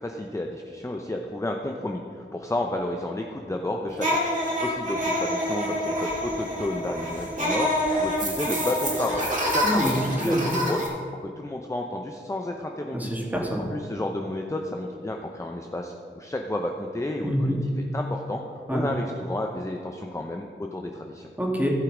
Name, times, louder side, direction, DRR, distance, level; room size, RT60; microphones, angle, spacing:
voice 1, 0.0-10.8 11.2-13.1 13.7-17.6 17.9-18.4 18.7-21.3, left 1 dB, 15° left, 2 dB, 0.8 m, -31 dB
sound 1, 4.0-10.9, equal, 40° right, 3.0 m, -27 dB
voice 2, 9.6-9.9 10.2-10.4 12.9-13.6 17.2-17.6 18.7-18.8 21.4-21.7, equal, 10° right, -3 dB, 2.5 m, -25 dB
16.0 x 5.7 x 5.1 m, 2.2 s
wide cardioid pair, 55°, 20 cm